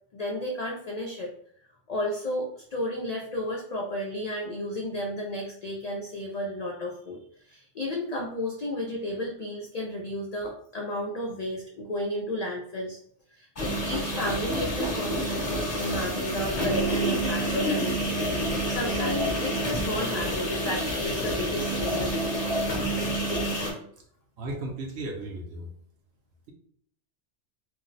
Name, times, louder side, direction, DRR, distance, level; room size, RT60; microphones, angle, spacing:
voice 1, 0.1-1.3 1.9-13.0 13.3-18.2 18.5-22.2, left 1 dB, 80° left, 0 dB, 0.3 m, -33 dB
sound 1, 13.6-23.7, right 1 dB, 40° left, 0.7 m, -28 dB
voice 2, 24.4-25.7, right 2 dB, 65° right, 1 dB, 0.8 m, -35 dB
2.5 x 2.0 x 3.9 m, 0.65 s
omnidirectional pair, 1.2 m